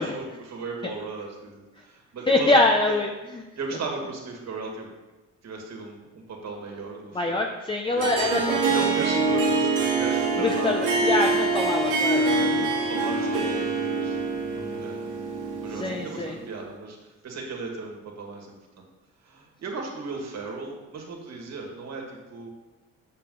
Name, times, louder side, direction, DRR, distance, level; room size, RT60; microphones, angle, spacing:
voice 1, 0.0-2.6 3.6-4.9 5.4-7.4 7.9-8.1 8.7-10.9 12.1-14.2 14.5-15.1 15.6-17.0 17.2-18.8 19.3-22.5, right 3 dB, 60° right, 0 dB, 2.0 m, -36 dB
voice 2, 2.3-3.1 3.3-3.4 7.1-9.2 10.4-12.6 15.7-16.4, left 2 dB, 15° left, 2 dB, 0.6 m, -25 dB
Harp, 8.0-16.4, right 3 dB, 85° right, 1.4 m, -25 dB
6.9 x 6.7 x 3.9 m, 1.1 s
cardioid pair, 90°, 30 cm